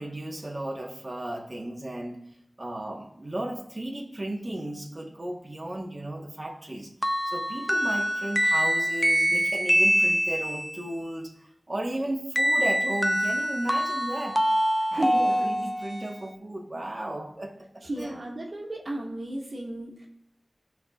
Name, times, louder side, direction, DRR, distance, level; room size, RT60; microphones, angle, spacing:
voice 1, 0.0-2.2 2.6-6.9 7.2-14.4 14.9-18.2, right 1 dB, 45° right, -1 dB, 1.2 m, -35 dB
sound 1, 7.0-10.8 12.4-16.1, equal, ahead, 0.7 m, -25 dB
voice 2, 14.9-15.6 17.8-20.1, right 1 dB, 85° right, -2 dB, 1.8 m, -34 dB
17.0 x 5.9 x 2.4 m, 0.76 s
wide cardioid pair, 45°, 0 cm